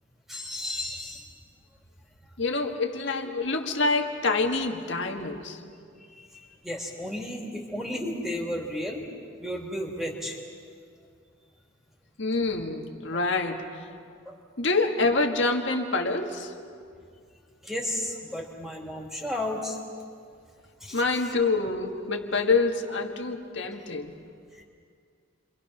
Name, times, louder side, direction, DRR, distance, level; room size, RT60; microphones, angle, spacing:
voice 1, 0.3-1.3 6.1-6.3 6.6-9.0 9.4-10.4 14.2-14.4 17.6-19.8 20.8-21.3, left 1 dB, ahead, -1 dB, 3.0 m, -33 dB
voice 2, 2.4-5.6 12.2-13.8 14.6-16.5 20.9-24.1, left 3 dB, 65° left, 3 dB, 1.8 m, -26 dB
29.5 x 24.0 x 6.0 m, 2.2 s
head